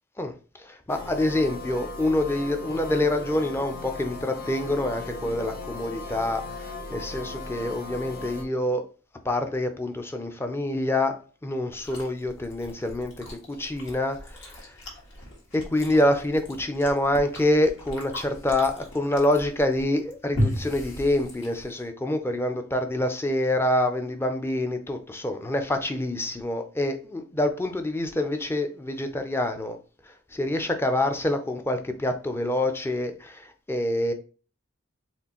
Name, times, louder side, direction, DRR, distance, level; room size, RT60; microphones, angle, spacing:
voice 1, 0.6-8.8 9.2-11.2 11.4-13.1 13.5-14.7 15.5-29.8 30.3-34.1, left 1 dB, 10° left, 0.4 m, -26 dB
sound 1, 0.9-8.4, left 2 dB, 50° left, 0.7 m, -37 dB
Chewing mastication, 11.7-21.9, equal, 65° left, 1.4 m, -36 dB
4.3 x 3.2 x 2.9 m
head